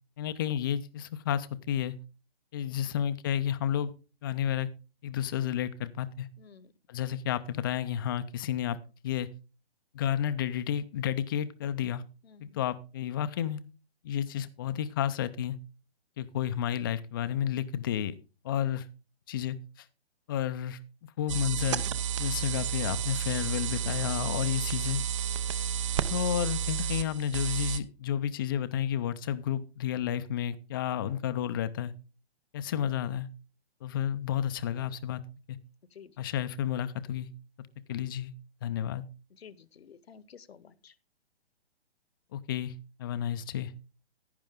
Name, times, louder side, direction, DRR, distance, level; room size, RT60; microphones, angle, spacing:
voice 1, 0.2-2.0 2.5-3.9 4.2-4.7 5.0-6.3 6.9-8.8 9.0-9.3 9.9-12.0 12.4-13.6 14.0-15.6 16.2-18.1 18.4-18.8 19.3-19.6 20.3-20.8 21.2-21.9 22.2-25.0 26.0-31.9 32.5-33.3 33.8-35.2 35.5-35.6 36.2-37.3 37.9-38.3 38.6-39.0 42.3-42.7 43.0-43.7, left 10 dB, 20° left, 13 dB, 0.5 m, -31 dB
voice 2, 6.4-6.7 12.2-12.7 35.9-36.1 39.3-40.9, left 7 dB, 65° left, 18 dB, 1.0 m, -53 dB
sound 1, 21.3-27.8, right 8 dB, 30° right, 0.6 m, -31 dB
10.5 x 10.5 x 3.6 m, 0.32 s
figure-of-eight pair, 135°, 33 cm